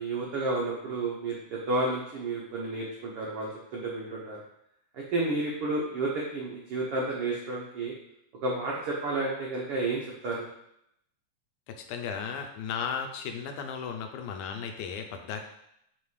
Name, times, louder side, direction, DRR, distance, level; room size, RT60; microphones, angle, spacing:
voice 1, 0.0-4.4 4.9-7.9 8.4-10.5, right 2 dB, 90° right, -3 dB, 1.2 m, -31 dB
voice 2, 11.7-15.4, left 6 dB, 80° left, 4 dB, 1.8 m, -35 dB
6.8 x 3.3 x 4.7 m, 0.77 s
omnidirectional pair, 3.9 m